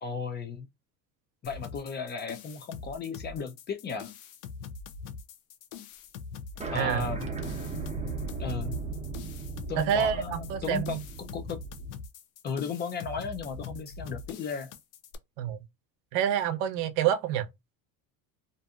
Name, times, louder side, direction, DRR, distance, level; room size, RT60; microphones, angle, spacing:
voice 1, 0.0-0.7 1.4-4.1 6.7-7.2 8.4-8.8 9.7-11.6 12.4-14.7, left 5 dB, 25° left, 0.3 m, -35 dB
sound 1, 1.4-15.2, left 5 dB, 80° left, 0.6 m, -43 dB
sound 2, 6.6-11.9, right 4 dB, 15° right, 0.7 m, -36 dB
voice 2, 6.7-7.1 9.9-11.0 15.4-15.6 16.1-17.5, right 9 dB, 70° right, 0.7 m, -27 dB
2.6 x 2.5 x 2.3 m
supercardioid pair, 110°, 40 cm